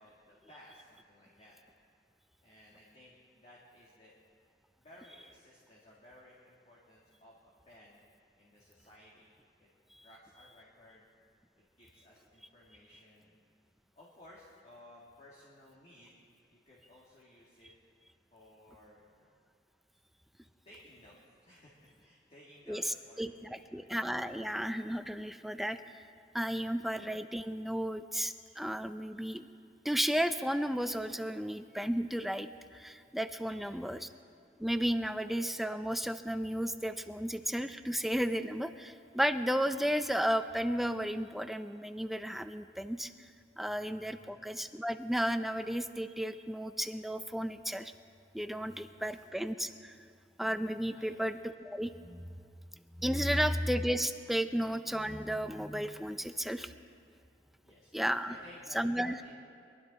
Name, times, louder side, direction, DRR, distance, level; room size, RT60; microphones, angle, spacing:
voice 1, 0.0-1.6 2.4-4.1 4.8-8.0 8.4-9.3 9.6-9.7 10.0-11.0 11.6-13.4 14.0-16.1 16.5-17.7 18.3-19.3 20.6-23.9 33.5-34.1 44.1-44.4 48.9-49.1 50.9-51.2 53.2-53.5 57.6-57.9 58.3-59.3, left 1 dB, 40° left, -5 dB, 2.1 m, -57 dB
voice 2, 22.7-26.0 26.3-29.5 29.8-34.1 34.6-43.1 43.6-47.9 48.3-49.9 50.4-52.3 53.0-56.7 57.9-58.3 58.7-59.2, equal, ahead, 9 dB, 0.5 m, -33 dB
22.5 x 12.0 x 4.1 m, 2.3 s
head